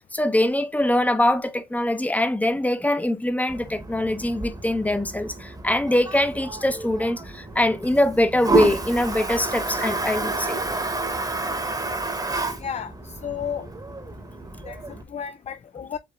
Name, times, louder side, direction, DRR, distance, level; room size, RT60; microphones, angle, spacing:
voice 1, 0.1-10.6, left 1 dB, 5° left, 0.7 m, -23 dB
Toilet flush, 3.5-15.0, right 3 dB, 20° right, 1.1 m, -30 dB
voice 2, 12.6-13.7 14.6-16.0, left 7 dB, 35° left, 0.4 m, -33 dB
7.6 x 2.7 x 2.3 m
cardioid pair, 75°, 21 cm